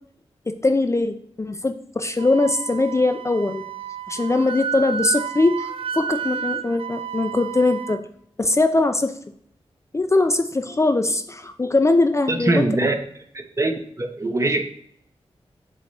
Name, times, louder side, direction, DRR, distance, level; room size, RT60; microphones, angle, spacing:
voice 1, 0.5-3.6 4.1-5.7 5.9-8.0 8.4-9.1 9.9-12.6, left 2 dB, 25° left, 7 dB, 0.4 m, -21 dB
Wind instrument woodwind instrument, 2.2-8.0, right 7 dB, 60° right, 0.4 m, -31 dB
voice 2, 12.3-12.9 13.3-13.7 14.0-14.6, right 2 dB, 30° right, 5 dB, 0.8 m, -22 dB
7.6 x 3.0 x 4.1 m, 0.66 s
wide cardioid pair, 70°, 11 cm